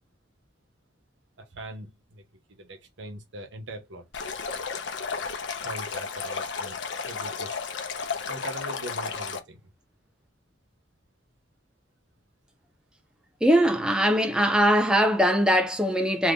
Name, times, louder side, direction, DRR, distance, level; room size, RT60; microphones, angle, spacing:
voice 1, 1.4-2.2 2.5-4.0 5.6-6.8 7.0-7.6 8.3-9.7, right 1 dB, 75° right, 1.0 m, -41 dB
Stream, 4.1-9.4, left 5 dB, 70° left, 0.7 m, -33 dB
voice 2, 13.4-16.3, equal, 5° right, 0.4 m, -21 dB
3.5 x 2.8 x 2.6 m
head